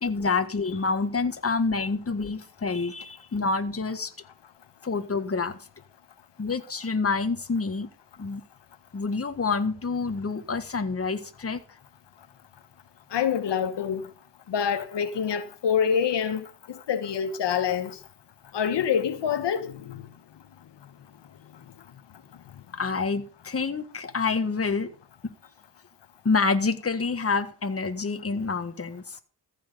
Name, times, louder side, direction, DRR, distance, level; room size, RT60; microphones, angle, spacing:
voice 1, 0.0-4.1 4.8-5.6 6.4-7.9 8.2-8.4 8.9-11.6 22.7-24.9 25.2-25.3 26.3-29.2, left 4 dB, 35° left, 1.6 m, -27 dB
voice 2, 13.1-14.0 14.5-18.0 18.5-20.0, left 8 dB, 90° left, 1.3 m, -26 dB
14.5 x 7.5 x 5.2 m
wide cardioid pair, 95°, 41 cm